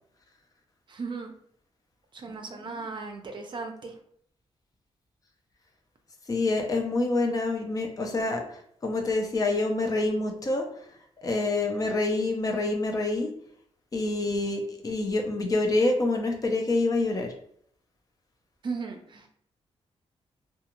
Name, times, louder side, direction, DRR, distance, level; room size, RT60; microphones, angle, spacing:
voice 1, 0.9-1.3 2.1-3.9 18.6-19.3, right 4 dB, 45° right, 4 dB, 0.5 m, -36 dB
voice 2, 6.3-10.7 11.2-13.3 13.9-17.3, left 2 dB, 35° left, 3 dB, 0.5 m, -27 dB
2.3 x 2.3 x 2.9 m, 0.65 s
cardioid pair, 105°, 11 cm